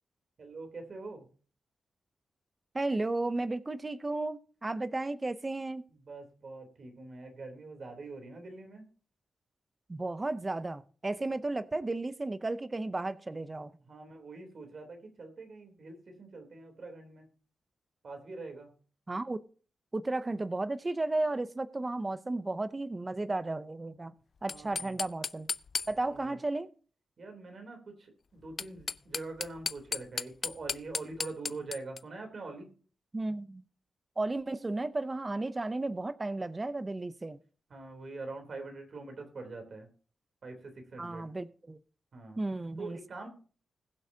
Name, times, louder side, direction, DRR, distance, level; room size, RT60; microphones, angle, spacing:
voice 1, 0.4-1.2 6.1-8.8 13.9-17.3 18.0-18.7 24.5-24.9 26.1-26.3 27.2-32.7 37.7-39.9 40.4-41.3 42.1-42.4 42.8-43.3, right 3 dB, 45° right, 4 dB, 3.3 m, -44 dB
voice 2, 2.7-5.9 9.9-13.7 19.1-19.4 19.9-24.1 24.4-25.5 25.9-26.7 33.1-33.6 34.2-37.4 41.0-41.8 42.4-43.0, right 2 dB, 20° right, 12 dB, 0.6 m, -34 dB
sound 1, 24.4-26.3 28.4-32.0, left 5 dB, 45° left, 0.4 m, -36 dB
20.5 x 7.8 x 2.8 m, 0.40 s
wide cardioid pair, 165°, 0 cm